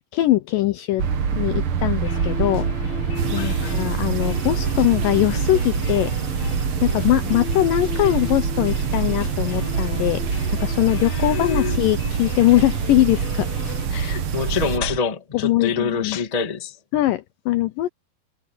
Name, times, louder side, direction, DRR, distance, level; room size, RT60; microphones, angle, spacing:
voice 1, 0.1-1.0 1.3-2.7 3.3-6.1 6.8-10.2 10.5-13.5 13.9-14.2 15.4-16.2 16.9-17.9, left 16 dB, 80° left, 2.1 m, -21 dB
sound 1, 1.0-15.0, right 6 dB, 75° right, 1.2 m, -26 dB
sound 2, 2.0-13.9, left 7 dB, 55° left, 2.4 m, -35 dB
sound 3, 3.1-14.8, right 8 dB, 55° right, 2.0 m, -32 dB
voice 2, 3.3-3.8 11.0-11.8 14.3-16.8, left 6 dB, 25° left, 0.8 m, -26 dB
omnidirectional pair, 4.5 m